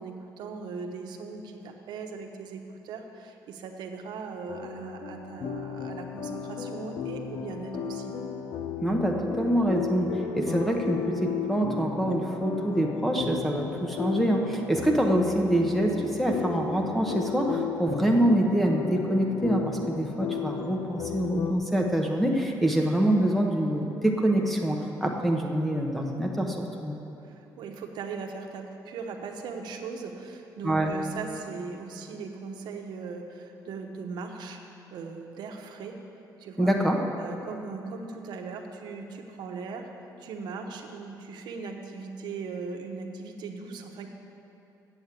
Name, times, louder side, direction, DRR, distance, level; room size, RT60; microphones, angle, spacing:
voice 1, 0.0-8.1 27.2-34.6 34.9-36.0 36.4-36.7 37.2-39.9 40.2-44.1, right 4 dB, 85° right, 3 dB, 0.9 m, -39 dB
sound 1, 4.5-21.5, left 6 dB, 85° left, 0.8 m, -34 dB
voice 2, 8.8-27.0 30.6-30.9 36.6-37.0, right 1 dB, ahead, 1 dB, 0.8 m, -25 dB
8.0 x 7.2 x 8.2 m, 2.9 s
cardioid pair, 165°, 7 cm